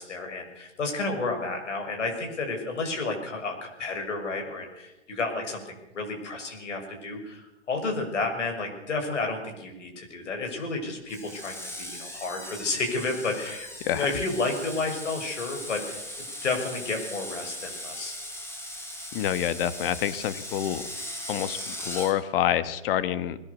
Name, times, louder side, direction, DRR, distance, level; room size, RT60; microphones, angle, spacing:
voice 1, 0.0-7.4 7.7-18.2, left 3 dB, 80° left, 3 dB, 6.6 m, -31 dB
Screech, 11.1-22.1, left 1 dB, 5° left, 4.1 m, -39 dB
voice 2, 19.1-20.8 21.3-23.4, left 11 dB, 50° left, 14 dB, 1.7 m, -27 dB
21.5 x 18.0 x 7.0 m, 0.92 s
hypercardioid pair, 130°, 35 cm